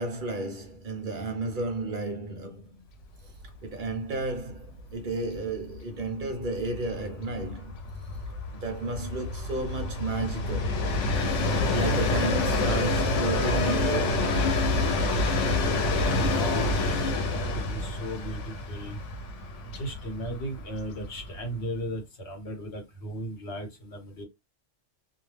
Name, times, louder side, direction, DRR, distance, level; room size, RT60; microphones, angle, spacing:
voice 1, 0.0-2.8 3.6-7.8 8.5-10.8 11.7-14.7, right 2 dB, 50° right, 0.8 m, -32 dB
Train, 3.4-3.5 3.8-3.9 4.2-21.6, left 2 dB, 85° left, 1.0 m, -28 dB
voice 2, 16.0-16.9 17.3-19.0 19.6-24.2, right 1 dB, 65° left, 1.3 m, -36 dB
2.4 x 2.2 x 3.2 m
omnidirectional pair, 1.2 m